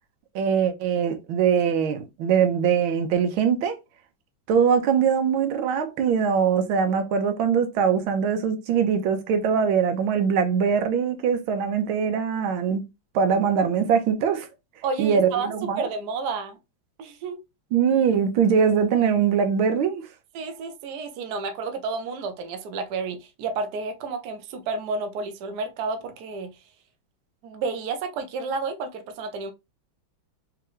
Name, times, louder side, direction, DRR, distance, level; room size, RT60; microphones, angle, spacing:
voice 1, 0.3-3.8 4.5-12.8 13.1-14.5 15.0-15.9 17.7-20.1, right 7 dB, 85° right, 1.6 m, -22 dB
voice 2, 14.8-16.6 17.0-17.4 20.3-26.6 27.4-29.5, right 4 dB, 65° right, 1.2 m, -31 dB
3.6 x 3.4 x 3.0 m
omnidirectional pair, 2.2 m